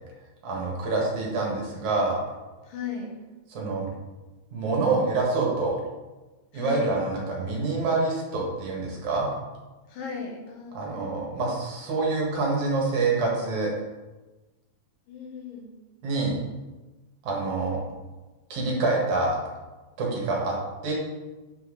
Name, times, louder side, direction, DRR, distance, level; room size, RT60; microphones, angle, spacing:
voice 1, 0.4-2.2 3.5-3.9 4.5-5.8 6.5-9.3 10.7-13.7 16.0-16.4 17.2-17.8 18.5-19.4 20.0-20.5 20.8-20.9, right 3 dB, 65° right, -3 dB, 2.9 m, -26 dB
voice 2, 2.6-3.1 6.5-6.9 9.9-11.2 15.1-15.7, left 5 dB, 85° left, 0 dB, 3.1 m, -37 dB
9.2 x 5.6 x 4.0 m, 1.2 s
omnidirectional pair, 3.9 m